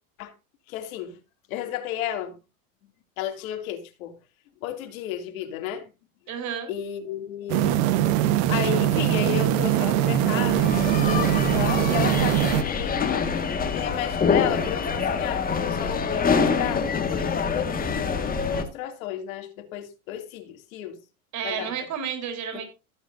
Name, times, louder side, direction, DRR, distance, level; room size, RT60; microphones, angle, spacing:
voice 1, 0.7-1.2 1.5-2.4 3.2-4.2 4.6-5.9 6.7-7.8 8.5-13.3 13.7-17.7 18.4-21.0 21.4-21.7, left 11 dB, 75° left, 2.9 m, -33 dB
voice 2, 6.3-6.7 21.3-22.6, right 8 dB, 40° right, 4.0 m, -31 dB
sound 1, 7.5-12.6, right 12 dB, 60° right, 1.3 m, -22 dB
sound 2, 10.4-18.6, left 5 dB, 20° left, 1.9 m, -26 dB
15.5 x 8.4 x 2.7 m
supercardioid pair, 115°, 42 cm